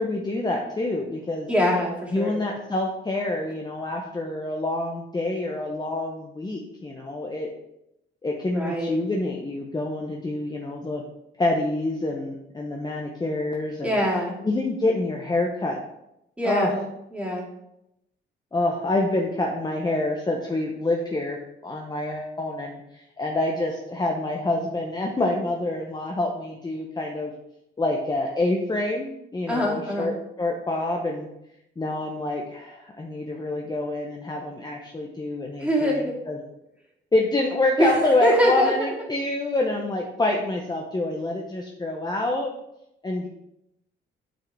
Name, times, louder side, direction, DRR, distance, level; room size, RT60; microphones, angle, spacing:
voice 1, 0.0-1.5 2.1-7.5 8.2-11.0 11.4-14.0 14.4-15.8 16.4-16.7 18.5-27.3 27.8-31.3 31.8-36.4 37.1-42.5 43.0-43.3, left 2 dB, 20° left, 0 dB, 0.9 m, -27 dB
voice 2, 1.5-2.4 8.5-8.9 13.8-14.4 16.4-16.9 17.1-17.5 29.5-30.1 35.6-36.1 37.8-38.7, equal, 5° right, -4 dB, 2.5 m, -24 dB
8.8 x 4.7 x 3.5 m, 0.85 s
cardioid pair, 90°, 20 cm